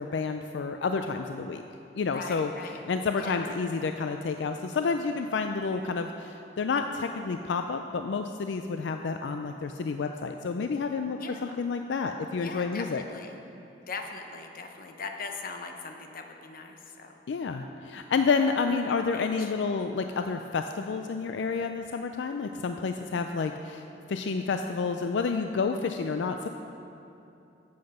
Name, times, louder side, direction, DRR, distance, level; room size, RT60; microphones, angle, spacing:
voice 1, 0.0-1.6 2.0-13.0 17.3-26.5, left 4 dB, 80° left, 6 dB, 0.4 m, -30 dB
voice 2, 2.1-2.8 3.2-3.4 11.2-11.6 12.4-13.4 13.9-17.2 18.4-18.5 19.1-19.5, left 4 dB, 55° left, 4 dB, 0.8 m, -40 dB
10.5 x 8.0 x 5.4 m, 2.8 s
head